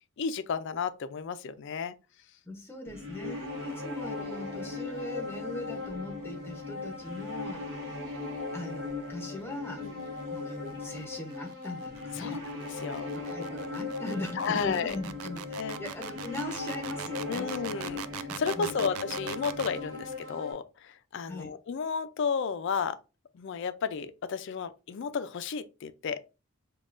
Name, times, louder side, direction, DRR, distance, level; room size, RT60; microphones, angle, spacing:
voice 1, 0.2-1.9 3.2-3.6 9.8-10.1 12.2-12.4 12.8-13.1 14.4-15.0 15.6-15.8 17.3-23.0 23.3-26.2, left 6 dB, 60° left, 0.4 m, -33 dB
voice 2, 2.5-7.9 8.5-9.8 10.3-12.4 13.1-17.5 18.6-18.8 21.3-21.5, left 1 dB, 10° left, 0.7 m, -40 dB
sound 1, 2.9-20.5, left 3 dB, 60° right, 1.0 m, -38 dB
sound 2, 10.5-19.8, right 10 dB, 85° right, 0.3 m, -41 dB
5.3 x 2.3 x 2.5 m
head